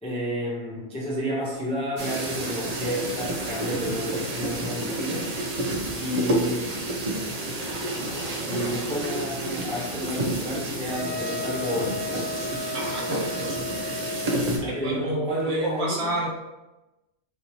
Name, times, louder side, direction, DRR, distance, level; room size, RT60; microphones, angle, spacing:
voice 1, 0.0-5.3 6.0-6.7 8.5-12.3 14.5-16.1, equal, 5° left, -5 dB, 0.5 m, -31 dB
sound 1, 2.0-14.6, right 1 dB, 45° right, 0.5 m, -30 dB
sound 2, 10.9-14.6, left 3 dB, 60° left, 1.4 m, -34 dB
voice 2, 12.7-13.5 14.6-16.3, right 1 dB, 65° right, -3 dB, 1.3 m, -30 dB
4.3 x 2.8 x 2.7 m, 1.0 s
omnidirectional pair, 1.2 m